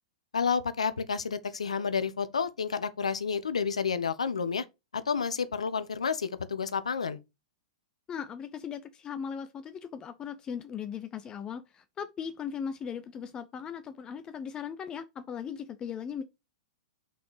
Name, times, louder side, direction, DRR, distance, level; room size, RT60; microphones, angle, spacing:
voice 1, 0.3-4.7 4.9-7.2, left 6 dB, 85° left, 0.8 m, -30 dB
voice 2, 8.1-16.2, left 7 dB, 25° left, 0.6 m, -38 dB
5.7 x 4.2 x 4.8 m
hypercardioid pair, 110°, 3 cm